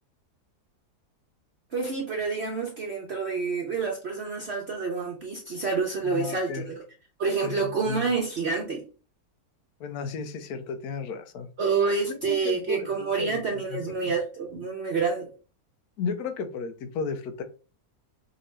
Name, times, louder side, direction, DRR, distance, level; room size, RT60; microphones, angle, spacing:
voice 1, 1.7-6.7 7.2-8.8 11.6-15.3, right 4 dB, 55° right, 0 dB, 0.8 m, -28 dB
voice 2, 6.0-6.7 7.4-8.1 9.8-11.5 12.0-13.4 13.7-14.1 16.0-17.4, left 5 dB, 75° left, 8 dB, 1.2 m, -34 dB
4.9 x 2.9 x 3.2 m, 0.35 s
omnidirectional pair, 1.7 m